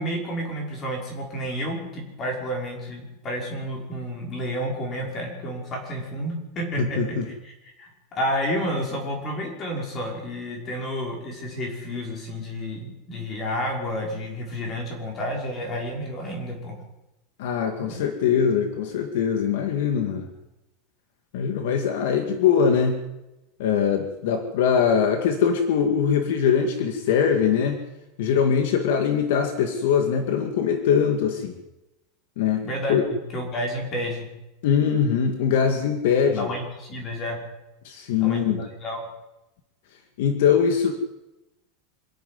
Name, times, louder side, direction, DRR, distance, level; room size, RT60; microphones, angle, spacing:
voice 1, 0.0-6.8 7.1-16.8 17.8-18.0 32.6-32.9 33.3-34.3 36.3-37.4 38.2-39.0, equal, 25° left, 0 dB, 5.7 m, -30 dB
voice 2, 6.8-7.3 17.4-20.3 21.3-23.0 23.6-27.8 28.2-31.5 32.4-32.6 32.9-33.0 34.6-36.5 37.8-38.6 40.2-40.9, left 7 dB, 65° left, 6 dB, 2.1 m, -22 dB
25.5 x 11.0 x 9.5 m, 0.97 s
supercardioid pair, 175°, 0 cm